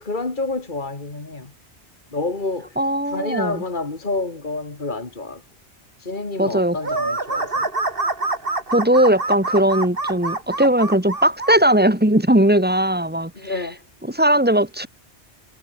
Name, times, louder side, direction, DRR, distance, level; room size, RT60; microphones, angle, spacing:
voice 1, 0.0-1.5 2.1-2.8 3.1-5.4 6.0-7.7 13.3-13.8, left 3 dB, 45° left, 2.8 m, -28 dB
voice 2, 2.8-3.6 6.4-6.8 8.7-13.5 14.1-14.9, right 1 dB, 10° right, 2.2 m, -18 dB
sound 1, 6.8-11.6, right 2 dB, 55° right, 3.3 m, -25 dB
omnidirectional pair, 1.2 m